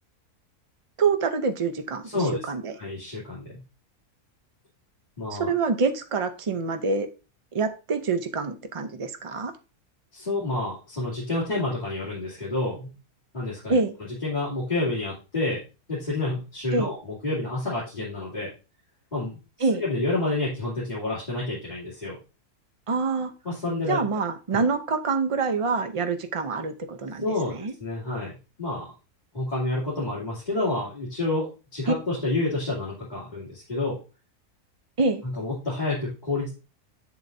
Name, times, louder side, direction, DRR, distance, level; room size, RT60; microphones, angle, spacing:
voice 1, 1.0-2.0 2.5-2.7 5.3-7.1 7.5-9.5 13.7-13.9 16.7-16.9 19.6-19.8 22.9-23.3 23.9-27.2 27.5-27.7 31.9-32.0 35.0-35.2, right 4 dB, 50° right, 8 dB, 0.3 m, -26 dB
voice 2, 2.0-2.4 2.8-3.6 5.2-5.5 10.1-12.9 13.3-13.8 14.2-15.6 15.9-18.5 19.1-19.4 19.7-22.2 23.4-24.0 27.2-27.5 27.8-28.9 29.3-34.0 35.2-36.5, left 2 dB, 30° left, -9 dB, 2.8 m, -29 dB
7.9 x 7.5 x 2.6 m, 0.32 s
omnidirectional pair, 1.6 m